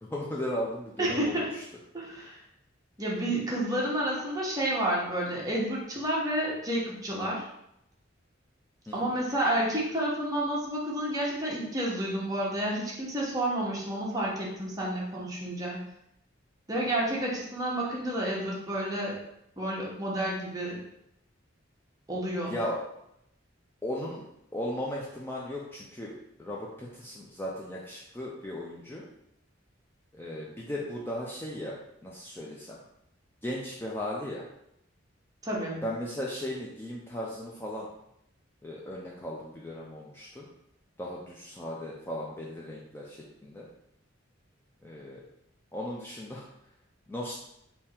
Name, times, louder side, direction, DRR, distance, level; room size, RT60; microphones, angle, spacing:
voice 1, 0.0-1.6 8.9-9.1 22.4-22.8 23.8-24.3 24.5-29.0 30.1-31.8 32.0-32.8 33.4-34.4 35.7-37.9 38.6-40.5 41.0-43.7 44.8-45.2 45.7-46.5 47.1-47.4, left 1 dB, 10° left, -4 dB, 0.5 m, -36 dB
voice 2, 1.0-1.5 1.9-2.4 3.0-7.4 8.9-15.8 16.7-19.2 19.6-20.8 22.1-22.6 35.4-35.8, right 1 dB, 20° right, -4 dB, 1.1 m, -30 dB
3.6 x 2.8 x 4.3 m, 0.79 s
head